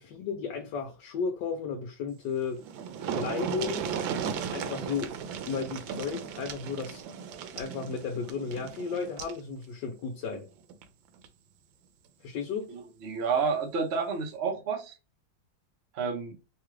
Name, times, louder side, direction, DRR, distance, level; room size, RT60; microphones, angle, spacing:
voice 1, 0.0-2.6 3.0-3.9 4.5-5.1 5.5-7.0 7.6-10.5 12.2-12.7, left 5 dB, 70° left, 1.2 m, -34 dB
sound 1, 2.3-2.4 2.6-9.4 10.7-10.8 11.2-11.3, right 7 dB, 85° right, 1.3 m, -36 dB
voice 2, 12.7-15.0 15.9-16.4, right 5 dB, 60° right, 0.6 m, -30 dB
3.4 x 2.3 x 3.1 m
omnidirectional pair, 2.1 m